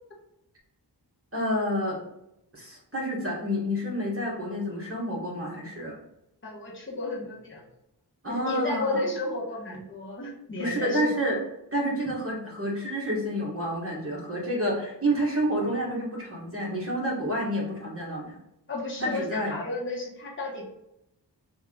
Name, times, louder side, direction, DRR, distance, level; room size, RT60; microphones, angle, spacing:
voice 1, 1.3-2.0 2.5-6.0 8.2-9.0 10.6-11.3 11.7-18.4 19.0-19.5, equal, 35° right, -3 dB, 1.4 m, -29 dB
voice 2, 6.4-7.6 8.3-11.1 18.7-20.7, left 2 dB, 30° left, -4 dB, 1.1 m, -33 dB
3.5 x 2.8 x 3.7 m, 0.84 s
wide cardioid pair, 75°, 41 cm